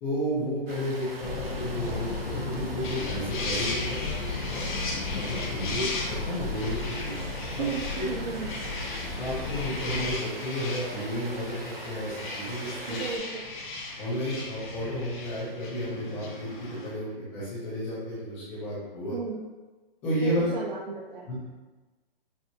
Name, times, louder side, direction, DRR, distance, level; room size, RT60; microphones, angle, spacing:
voice 1, 0.0-4.6 5.1-7.2 7.6-7.7 7.9-8.1 9.2-13.0 14.0-19.2 20.0-20.5 21.3-21.5, equal, 5° left, -11 dB, 0.5 m, -32 dB
sound 1, 0.7-13.2, right 2 dB, 75° right, 0.9 m, -42 dB
sound 2, 1.2-10.2, left 4 dB, 75° left, 0.6 m, -35 dB
sound 3, 2.8-16.9, left 2 dB, 55° left, 1.0 m, -37 dB
voice 2, 7.6-8.5 12.9-13.4 19.1-19.4 20.2-21.2, right 5 dB, 55° right, -2 dB, 0.6 m, -34 dB
6.0 x 2.6 x 2.6 m, 1.2 s
hypercardioid pair, 170°, 30 cm